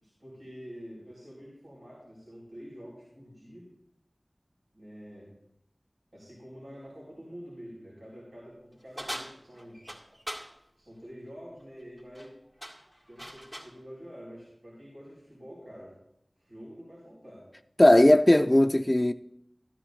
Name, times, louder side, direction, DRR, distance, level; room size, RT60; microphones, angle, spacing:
voice 1, 0.0-3.7 4.7-5.3 6.1-9.9 10.8-12.3 13.1-16.0 16.4-17.5, equal, 80° right, 4.4 m, -47 dB
sound 1, 9.0-10.5 12.0-12.3 12.6-13.8, equal, 35° right, 2.1 m, -40 dB
voice 2, 17.8-19.1, left 1 dB, 25° left, 0.3 m, -18 dB
13.5 x 13.0 x 2.6 m
wide cardioid pair, 45°, 0 cm